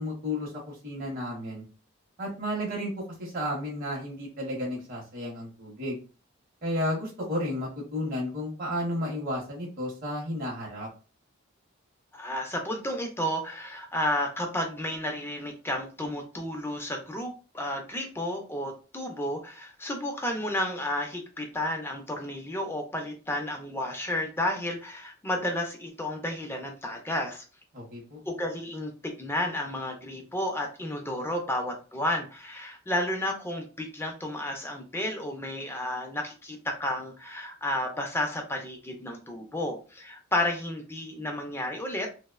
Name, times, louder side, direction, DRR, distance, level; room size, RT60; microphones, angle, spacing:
voice 1, 0.0-1.6 2.2-6.0 6.6-10.9 27.7-28.2, left 1 dB, 45° right, -4 dB, 0.8 m, -32 dB
voice 2, 12.1-27.4 28.3-42.1, left 1 dB, 10° left, 2 dB, 0.4 m, -32 dB
2.7 x 2.0 x 2.3 m, 0.34 s
head